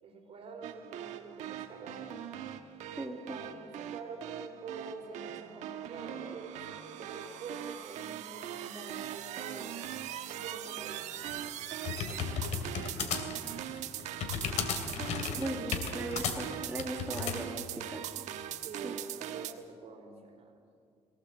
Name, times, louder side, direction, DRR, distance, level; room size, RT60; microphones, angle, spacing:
voice 1, 0.0-2.3 3.3-9.8 10.2-11.2 15.1-15.5 18.6-20.6, right 4 dB, 55° right, 3 dB, 4.4 m, -46 dB
sound 1, 0.6-19.5, right 11 dB, 80° right, 1.2 m, -41 dB
voice 2, 3.0-3.4 15.4-18.1 18.8-19.0, right 1 dB, 15° right, 0 dB, 2.0 m, -38 dB
sound 2, 11.3-17.4, left 7 dB, 75° left, 2.6 m, -35 dB
22.5 x 17.5 x 7.6 m, 2.2 s
cardioid pair, 105°, 12 cm